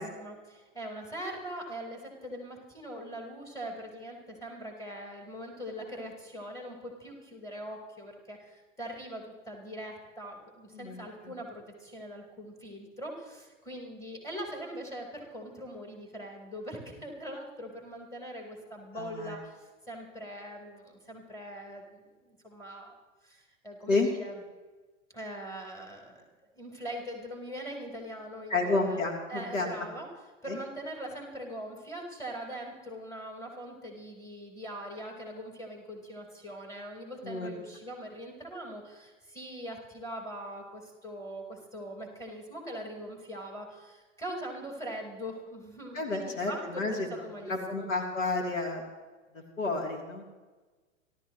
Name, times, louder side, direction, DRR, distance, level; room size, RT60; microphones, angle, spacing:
voice 1, 0.0-22.9 23.2-24.4 25.1-26.2 26.6-29.0 29.3-30.1 30.4-47.9, equal, 10° left, -1 dB, 4.3 m, -42 dB
voice 2, 10.7-11.3 18.9-19.4 23.9-24.1 28.5-29.7 30.5-30.6 37.2-37.5 45.9-47.1 47.4-48.8 49.6-50.2, left 3 dB, 75° left, 1 dB, 3.3 m, -30 dB
30.0 x 13.0 x 3.1 m, 1.3 s
figure-of-eight pair, 95°, 39 cm